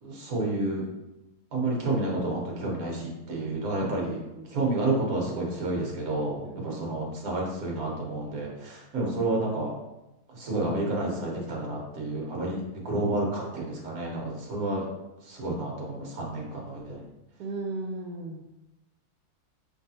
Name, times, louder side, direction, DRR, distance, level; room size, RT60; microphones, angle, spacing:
voice 1, 0.0-0.8 1.5-4.2 4.5-9.7 10.3-14.9 15.2-17.0, right 2 dB, 65° right, -2 dB, 1.5 m, -30 dB
voice 2, 3.4-4.5 6.4-7.0 17.4-18.4, right 2 dB, 90° right, -1 dB, 1.2 m, -38 dB
4.8 x 3.5 x 2.7 m, 0.97 s
omnidirectional pair, 1.7 m